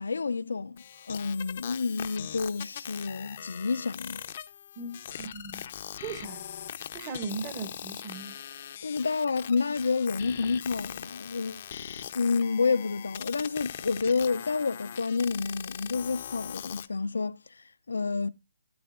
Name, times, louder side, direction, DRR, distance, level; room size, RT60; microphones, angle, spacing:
voice 1, 0.0-4.2 8.8-11.6 12.1-17.4 17.9-18.3, left 4 dB, 80° left, 0.6 m, -29 dB
sound 1, 0.8-16.9, left 9 dB, 35° left, 0.6 m, -41 dB
voice 2, 4.8-5.7 6.0-6.4 6.9-8.3, right 4 dB, 20° right, 0.9 m, -38 dB
13.0 x 9.4 x 2.5 m
hypercardioid pair, 165°, 0 cm